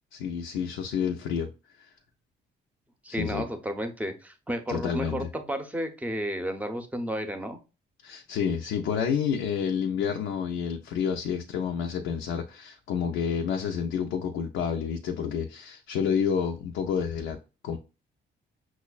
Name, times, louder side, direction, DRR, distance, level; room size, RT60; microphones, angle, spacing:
voice 1, 0.1-1.5 1.8-1.9 3.1-3.5 4.7-5.3 8.0-17.4 17.6-17.8, left 7 dB, 90° left, 0.4 m, -29 dB
voice 2, 3.0-7.6, equal, 5° right, 0.6 m, -32 dB
6.0 x 2.1 x 2.3 m
cardioid pair, 90°, 20 cm